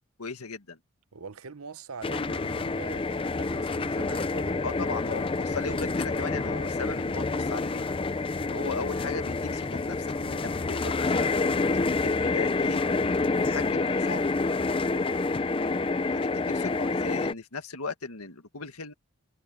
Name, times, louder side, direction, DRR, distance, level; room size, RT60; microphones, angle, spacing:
voice 1, 0.2-0.8 4.6-7.9 8.4-10.4 10.7-12.9 13.3-14.3 16.1-18.9, left 4 dB, 85° left, 1.8 m, -37 dB
voice 2, 1.1-4.6 14.9-15.4, right 4 dB, 75° right, 0.9 m, -43 dB
sound 1, 2.0-17.3, left 3 dB, 25° left, 0.5 m, -28 dB
head